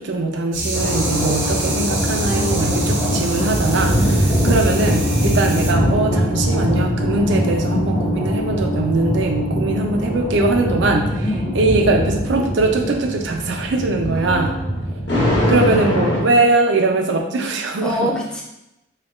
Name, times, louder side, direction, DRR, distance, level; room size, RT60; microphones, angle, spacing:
voice 1, 0.0-4.0 4.4-11.2 11.5-14.5 15.5-18.1, right 2 dB, 65° right, 3 dB, 0.5 m, -20 dB
sound 1, 0.5-5.7, right 1 dB, 85° right, 0.9 m, -26 dB
sound 2, 0.7-16.2, equal, 65° left, 1.0 m, -22 dB
Alarm, 0.9-9.8, left 1 dB, 85° left, 0.3 m, -31 dB
voice 2, 4.0-4.4 9.7-9.9 11.2-11.5 14.1-14.8 16.1-16.3 17.8-18.4, equal, 5° left, -3 dB, 0.5 m, -27 dB
4.1 x 2.3 x 3.0 m, 0.88 s
head